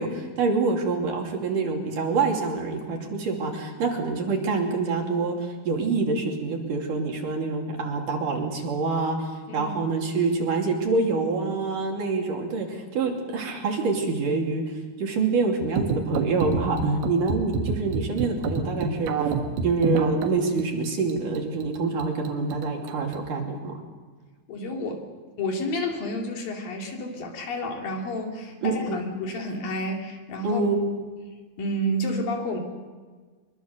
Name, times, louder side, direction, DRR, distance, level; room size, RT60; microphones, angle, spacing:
voice 1, 0.0-14.6 15.0-19.3 19.6-23.8 28.6-29.0 30.4-30.8, right 4 dB, 60° right, 1 dB, 4.3 m, -26 dB
sound 1, 15.6-23.3, right 4 dB, 85° right, 3.4 m, -28 dB
voice 2, 24.5-25.1 25.4-30.6 31.6-32.6, equal, 70° left, 2 dB, 4.2 m, -30 dB
24.5 x 22.5 x 6.7 m, 1.4 s
omnidirectional pair, 4.3 m